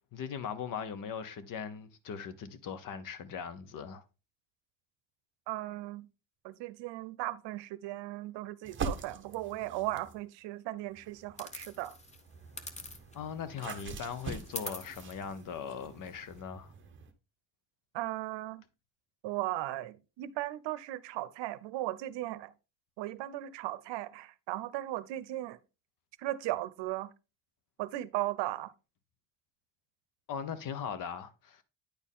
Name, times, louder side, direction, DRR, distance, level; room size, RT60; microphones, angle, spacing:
voice 1, 0.1-4.0 13.1-16.7 30.3-31.6, left 7 dB, 50° left, 0.9 m, -39 dB
voice 2, 5.5-6.1 6.4-12.0 17.9-18.6 19.2-22.5 23.0-25.6 26.2-27.1 27.8-28.7, right 16 dB, 80° right, 0.7 m, -37 dB
sound 1, 8.6-10.2 10.9-17.1, right 5 dB, 30° right, 0.8 m, -44 dB
sound 2, 11.4-13.3 13.6-16.4, left 2 dB, 15° left, 0.6 m, -46 dB
9.6 x 4.4 x 3.6 m
cardioid pair, 160°, 42 cm